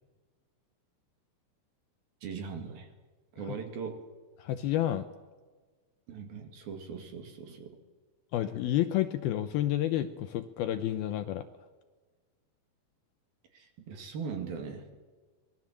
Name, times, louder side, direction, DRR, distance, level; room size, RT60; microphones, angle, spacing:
voice 1, 2.2-2.9 3.3-4.0 6.1-7.8 13.5-14.9, right 6 dB, 60° right, 5 dB, 3.8 m, -40 dB
voice 2, 4.4-5.1 8.3-11.4, left 12 dB, 75° left, 9 dB, 2.4 m, -30 dB
25.0 x 20.0 x 7.5 m, 1.4 s
omnidirectional pair, 5.0 m